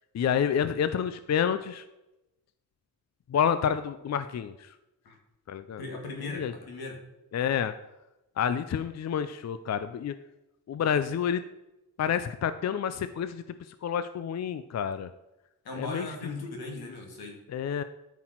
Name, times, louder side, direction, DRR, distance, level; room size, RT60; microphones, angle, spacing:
voice 1, 0.1-1.8 3.3-4.7 5.5-5.8 6.3-6.5 7.3-7.7 8.4-10.2 10.7-11.4 12.0-15.1 15.8-16.3 17.5-17.8, left 8 dB, 50° left, 12 dB, 0.5 m, -29 dB
voice 2, 5.8-7.0 15.6-17.4, left 2 dB, 85° left, 1 dB, 2.6 m, -38 dB
12.5 x 6.0 x 4.5 m, 0.95 s
wide cardioid pair, 175°, 36 cm